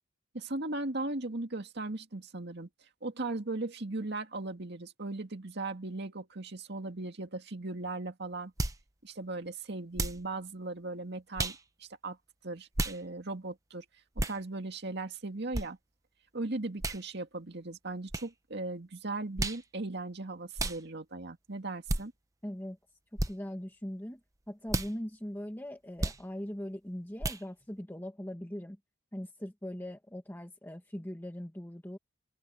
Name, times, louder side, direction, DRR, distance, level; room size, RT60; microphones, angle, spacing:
voice 1, 0.3-2.7 3.0-8.5 9.0-12.2 12.4-13.9 14.3-15.8 16.3-22.1, right 2 dB, 55° right, 2.1 m, -38 dB
sound 1, 8.6-8.8 9.9-10.2 11.4-11.6 12.7-13.0 14.2-14.4 15.5-15.7 16.8-17.0 18.1-18.3 19.4-19.6 20.6-20.8 21.9-22.0 23.2-23.3 24.7-24.9 26.0-26.2 27.2-27.4, right 2 dB, 15° right, 0.9 m, -32 dB
voice 2, 22.4-22.8 23.1-24.2 24.5-28.8 29.1-32.0, equal, 10° left, 1.2 m, -40 dB
open air
head